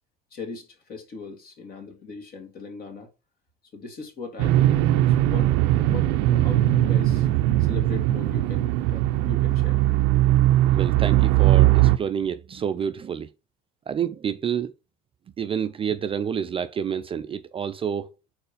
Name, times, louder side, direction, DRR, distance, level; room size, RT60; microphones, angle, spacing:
voice 1, 0.3-3.1 3.7-4.9 5.2-7.3 7.6-9.8, left 4 dB, 45° left, 2.0 m, -39 dB
sound 1, 4.4-12.0, right 14 dB, 75° right, 0.6 m, -20 dB
voice 2, 10.7-13.3 13.9-14.7 15.4-18.1, right 8 dB, 25° right, 0.4 m, -28 dB
4.5 x 4.2 x 5.0 m
supercardioid pair, 100°, 21 cm